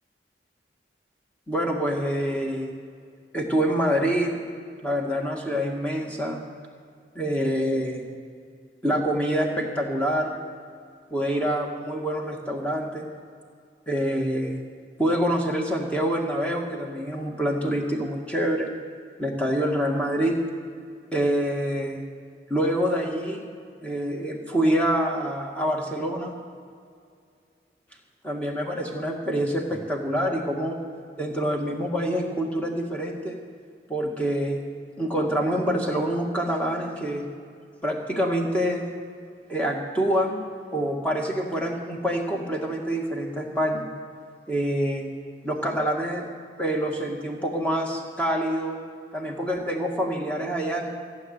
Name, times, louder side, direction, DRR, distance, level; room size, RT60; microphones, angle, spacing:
voice 1, 1.5-2.7 3.3-4.4 4.8-6.5 7.2-8.1 8.8-10.4 11.1-13.1 13.9-14.6 15.0-18.7 19.2-20.4 21.1-22.0 22.5-23.4 23.8-26.3 28.2-30.8 31.2-33.4 33.9-34.6 35.0-37.3 37.8-38.9 39.5-40.4 40.7-43.9 44.5-45.1 45.4-46.3 46.6-48.8 49.1-50.9, equal, 5° left, 0 dB, 1.8 m, -26 dB
16.0 x 7.5 x 9.5 m, 2.3 s
head